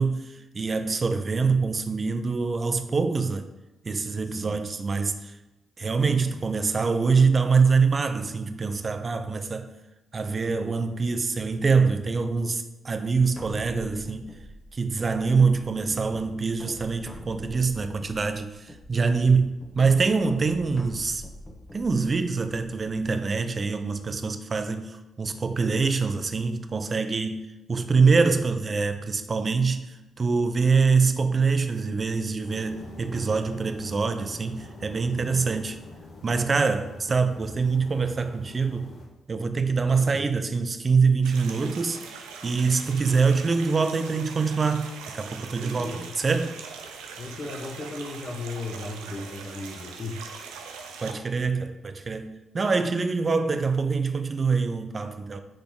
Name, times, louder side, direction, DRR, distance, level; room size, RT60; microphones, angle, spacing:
voice 1, 0.0-3.5 3.8-5.3 5.8-9.7 10.1-14.3 14.7-21.2 21.7-35.8 36.2-38.9 39.3-46.5 51.0-55.4, right 4 dB, 45° right, 0.8 m, -25 dB
sound 1, 13.3-23.1, equal, 15° left, 1.5 m, -45 dB
sound 2, 32.4-39.1, left 2 dB, 75° left, 1.8 m, -45 dB
voice 2, 40.0-40.3 45.6-46.1 47.2-50.3, left 2 dB, 45° left, 1.2 m, -36 dB
sound 3, 41.2-51.1, right 5 dB, 90° right, 0.8 m, -42 dB
6.4 x 4.1 x 6.3 m
supercardioid pair, 50°, 0 cm